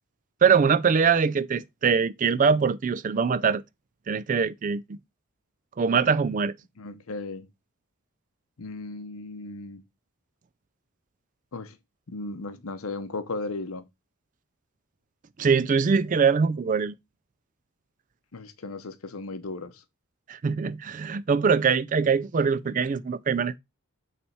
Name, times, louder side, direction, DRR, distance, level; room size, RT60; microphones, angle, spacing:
voice 1, 0.4-3.6 4.1-5.0 5.8-6.5 15.4-16.9 20.3-23.6, right 5 dB, 35° right, 0.3 m, -23 dB
voice 2, 6.8-7.5 8.6-9.8 11.5-11.8 12.1-13.9 18.3-19.8, left 3 dB, 75° left, 0.8 m, -36 dB
6.9 x 3.4 x 4.4 m
head